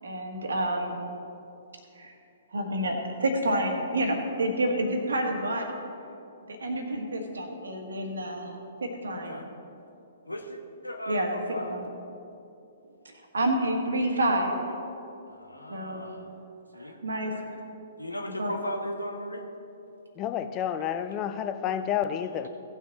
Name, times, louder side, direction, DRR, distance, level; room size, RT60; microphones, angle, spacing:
voice 1, 0.0-1.0 2.0-2.1 2.5-5.7 6.5-9.4 11.1-11.4 11.7-11.8 13.0-14.7 15.7-16.1 16.8-17.5 18.3-18.5, right 1 dB, 70° right, 3 dB, 1.5 m, -29 dB
voice 2, 9.1-9.5 10.3-11.8 15.3-16.3 16.7-17.0 18.0-19.5, equal, 85° left, 3 dB, 1.1 m, -36 dB
voice 3, 20.2-22.5, left 9 dB, 25° left, 9 dB, 0.5 m, -30 dB
16.5 x 6.0 x 4.0 m, 2.8 s
figure-of-eight pair, 115°, 0 cm